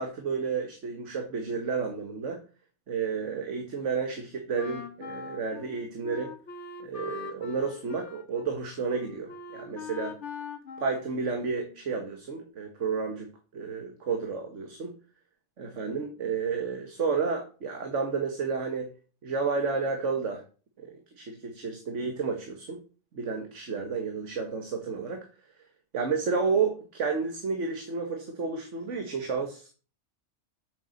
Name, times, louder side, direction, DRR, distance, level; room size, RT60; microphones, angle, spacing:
voice 1, 0.0-2.4 2.9-6.3 6.8-10.2 10.8-14.9 15.6-18.9 19.2-20.4 20.8-22.8 23.1-25.3 25.9-29.7, right 5 dB, 80° right, 4 dB, 1.8 m, -31 dB
Wind instrument woodwind instrument, 4.5-11.8, left 5 dB, 70° left, 1.5 m, -42 dB
8.7 x 6.8 x 6.5 m, 0.38 s
omnidirectional pair, 1.2 m